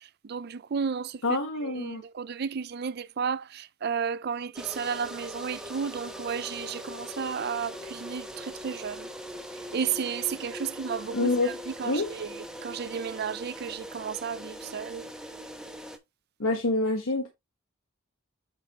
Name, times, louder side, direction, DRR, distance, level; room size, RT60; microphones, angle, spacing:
voice 1, 0.2-1.2 1.6-9.1 9.7-15.0, right 6 dB, 50° right, 0.4 m, -33 dB
voice 2, 1.2-2.0 11.1-11.6 11.8-12.1 16.4-17.3, left 2 dB, 90° left, 1.2 m, -26 dB
sound 1, 4.5-16.0, equal, 5° right, 0.9 m, -41 dB
8.2 x 4.8 x 2.9 m
head